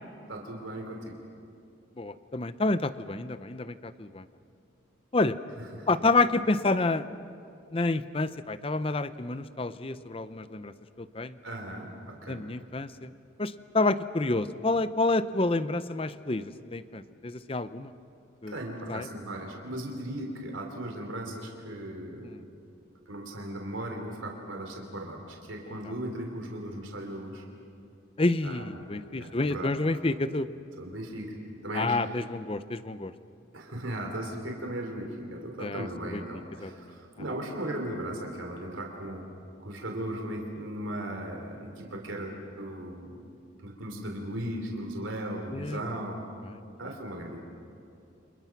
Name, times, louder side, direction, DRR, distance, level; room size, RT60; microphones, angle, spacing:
voice 1, 0.3-1.1 5.6-6.0 11.4-12.5 18.5-22.3 23.1-27.4 28.4-28.7 29.1-29.7 30.8-31.3 31.6-32.0 33.5-39.3 39.6-43.2 43.6-46.2 46.8-47.4, right 1 dB, 85° right, 2 dB, 3.3 m, -37 dB
voice 2, 2.0-4.2 5.1-5.4 5.9-7.0 7.7-11.4 12.3-13.1 13.4-17.9 18.4-18.5 18.9-19.1 22.2-22.4 25.8-25.9 28.2-30.5 31.7-33.1 35.6-36.2 36.6-36.9 45.5-45.8, left 2 dB, 30° left, 13 dB, 0.6 m, -29 dB
29.5 x 27.5 x 6.0 m, 2.6 s
head